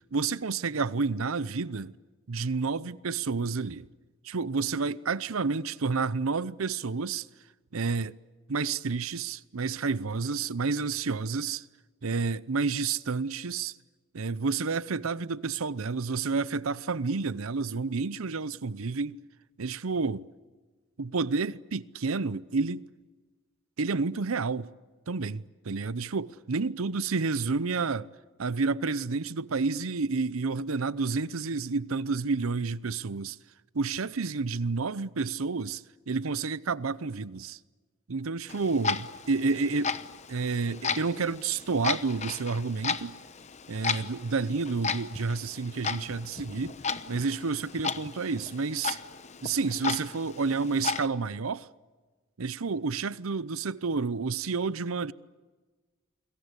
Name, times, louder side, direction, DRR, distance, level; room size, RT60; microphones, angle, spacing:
voice 1, 0.1-1.9 2.3-3.9 4.2-7.3 7.7-8.1 8.5-11.6 12.0-13.7 14.1-19.2 19.6-20.2 21.0-22.9 23.8-24.7 25.1-28.1 28.4-33.4 33.7-37.6 38.1-40.0 40.3-43.2 43.7-46.8 47.1-49.0 49.4-51.7 52.4-55.1, right 4 dB, 80° right, 0.7 m, -30 dB
Clock, 38.5-51.1, left 5 dB, 35° left, 0.9 m, -35 dB
29.0 x 22.0 x 8.2 m
head